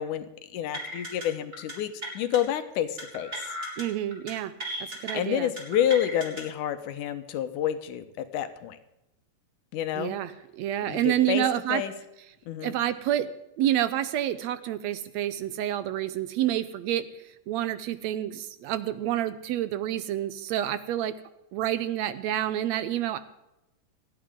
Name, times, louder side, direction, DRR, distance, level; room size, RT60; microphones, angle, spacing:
voice 1, 0.0-3.5 5.1-8.8 9.7-10.2 10.9-11.4 11.7-11.9 12.5-12.8, left 10 dB, 85° left, 9 dB, 2.5 m, -29 dB
sound 1, 0.7-1.3 1.5-1.7 2.0-2.4 3.0-3.8 4.1-4.3 4.6-5.1 5.6-6.4, right 1 dB, 20° right, 3.5 m, -36 dB
voice 2, 3.8-4.5 4.9-5.5 10.0-11.8 12.6-13.3 13.6-21.1 21.5-23.2, right 12 dB, 75° right, 13 dB, 1.7 m, -28 dB
28.0 x 9.5 x 3.7 m, 0.92 s
omnidirectional pair, 3.6 m